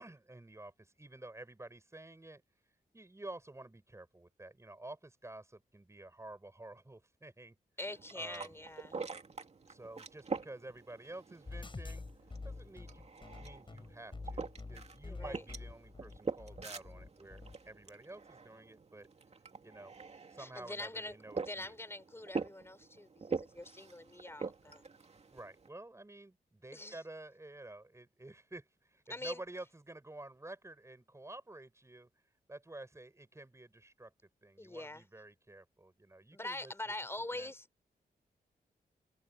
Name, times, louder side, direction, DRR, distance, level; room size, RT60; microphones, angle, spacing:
voice 1, 0.0-2.4 2.9-7.6 8.1-8.6 9.6-12.1 12.4-19.1 19.6-19.9 20.3-21.8 25.3-32.1 32.5-34.1 34.4-36.9 37.3-37.5, right 2 dB, 20° right, 7.3 m, -51 dB
voice 2, 7.8-9.0 15.0-15.4 20.4-24.8 26.7-27.0 29.1-29.4 34.6-35.0 36.3-37.7, left 1 dB, 15° left, 4.5 m, -44 dB
sound 1, 7.9-25.7, right 4 dB, 40° right, 2.5 m, -45 dB
sound 2, 11.4-17.5, left 3 dB, 30° left, 6.7 m, -47 dB
wide cardioid pair, 95°, 16 cm